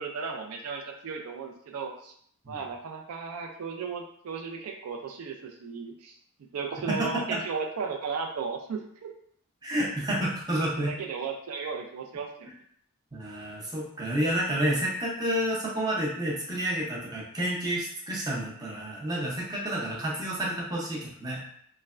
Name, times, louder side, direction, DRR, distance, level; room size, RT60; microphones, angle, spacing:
voice 1, 0.0-2.1 2.5-6.1 6.5-9.1 10.6-12.5, right 5 dB, 75° right, 2 dB, 0.4 m, -35 dB
voice 2, 6.9-7.4 9.6-10.9 13.1-21.5, right 1 dB, 15° right, -4 dB, 0.6 m, -30 dB
3.2 x 2.1 x 2.4 m, 0.64 s
head